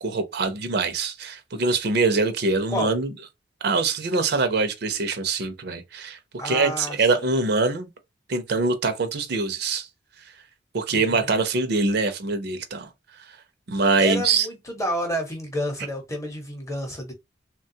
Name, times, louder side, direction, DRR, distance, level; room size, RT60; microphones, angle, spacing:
voice 1, 0.0-3.1 3.6-6.2 6.4-7.9 8.3-9.9 10.7-12.9 13.7-14.5, right 3 dB, 60° right, 0.6 m, -23 dB
voice 2, 6.4-7.0 10.9-11.3 14.0-17.1, equal, 15° left, 0.8 m, -30 dB
3.2 x 2.3 x 2.7 m
head